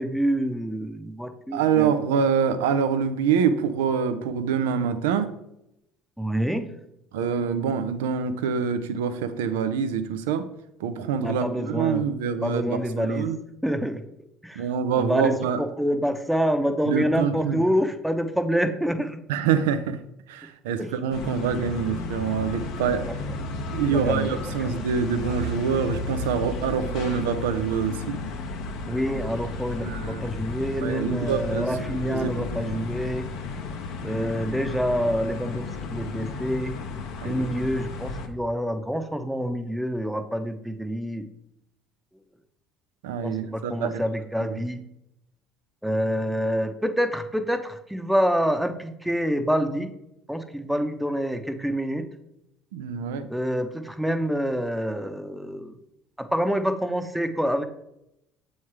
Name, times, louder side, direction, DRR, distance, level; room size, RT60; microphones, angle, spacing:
voice 1, 0.0-2.0 6.2-6.6 11.2-12.0 12.4-13.3 13.6-14.0 14.4-14.7 15.0-15.3 15.6-19.2 20.8-20.9 23.9-24.7 28.9-33.3 34.0-36.7 37.2-41.3 43.2-44.8 45.8-49.9 50.3-52.1 53.3-55.8 56.2-57.6, equal, 5° right, 7 dB, 0.8 m, -27 dB
voice 2, 1.5-5.3 7.1-10.5 10.8-13.4 14.6-15.6 16.9-17.6 19.3-20.0 20.3-23.0 23.7-28.2 29.8-30.3 30.8-31.7 32.1-32.9 37.2-37.6 43.0-44.0 44.4-44.6 52.7-53.3, right 7 dB, 85° right, 11 dB, 0.5 m, -26 dB
sound 1, 21.1-38.3, left 3 dB, 70° left, 0.8 m, -33 dB
7.3 x 3.2 x 4.7 m, 0.82 s
hypercardioid pair, 70°, 0 cm